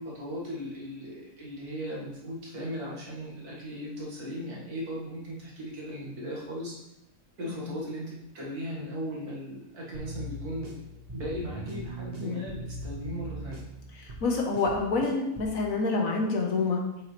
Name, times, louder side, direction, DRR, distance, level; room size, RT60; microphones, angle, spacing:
voice 1, 0.0-6.8 7.4-10.8 11.1-13.7, equal, 65° right, -5 dB, 2.5 m, -37 dB
sound 1, 9.9-15.6, right 1 dB, 30° right, 0.8 m, -40 dB
voice 2, 13.9-16.8, left 3 dB, 60° left, 1 dB, 1.7 m, -28 dB
7.7 x 6.5 x 3.3 m, 0.87 s
omnidirectional pair, 1.7 m